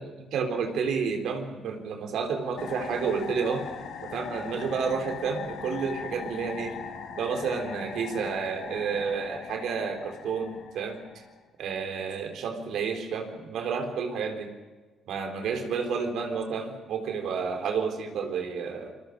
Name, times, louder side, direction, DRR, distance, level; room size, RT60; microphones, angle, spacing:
voice 1, 0.3-3.7 4.0-6.8 7.2-11.2 11.6-14.5 15.1-18.9, right 5 dB, 75° right, 5 dB, 3.9 m, -30 dB
sound 1, 2.6-11.4, left 6 dB, 80° left, 3.0 m, -40 dB
28.5 x 22.5 x 5.3 m, 1.4 s
cardioid pair, 90°, 0 cm